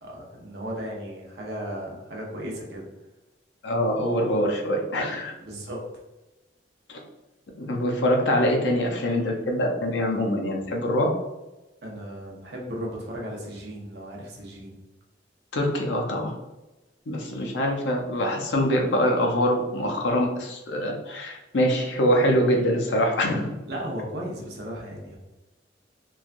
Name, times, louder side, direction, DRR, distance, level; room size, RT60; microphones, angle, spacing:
voice 1, 0.0-2.9 5.4-5.8 10.6-10.7 11.8-14.7 23.7-25.2, equal, 60° right, -2 dB, 0.7 m, -35 dB
voice 2, 3.6-5.3 6.9-7.0 7.6-11.2 15.5-16.3 17.1-23.5, equal, 80° left, 1 dB, 0.5 m, -24 dB
3.1 x 2.2 x 2.4 m, 1.0 s
head